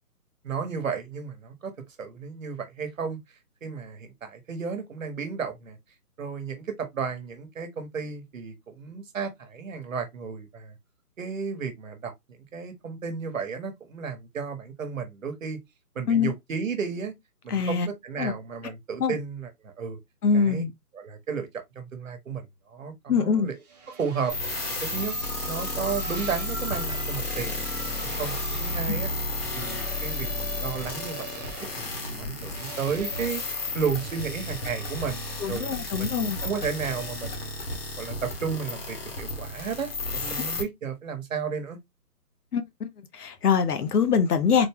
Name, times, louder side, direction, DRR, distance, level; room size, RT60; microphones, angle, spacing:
voice 1, 0.4-1.7 2.0-3.2 3.6-5.8 6.2-10.7 11.2-15.6 15.9-17.1 17.4-20.0 20.3-20.6 20.9-21.5 21.7-23.6 24.0-24.3 24.8-25.1 25.5-29.1 29.5-33.4 33.7-35.7 36.0-37.5 38.0-41.8, right 6 dB, 55° right, 1.2 m, -33 dB
voice 2, 17.5-17.9 18.2-18.3 19.0-19.1 20.2-20.7 23.1-23.5 28.9-29.0 35.4-36.4 40.4-40.5 42.5-44.7, left 6 dB, 70° left, 0.9 m, -24 dB
sound 1, 23.6-34.9, right 3 dB, 25° right, 1.0 m, -40 dB
sound 2, 24.3-40.6, left 2 dB, 40° left, 1.1 m, -33 dB
3.9 x 2.2 x 3.5 m
hypercardioid pair, 165°, 47 cm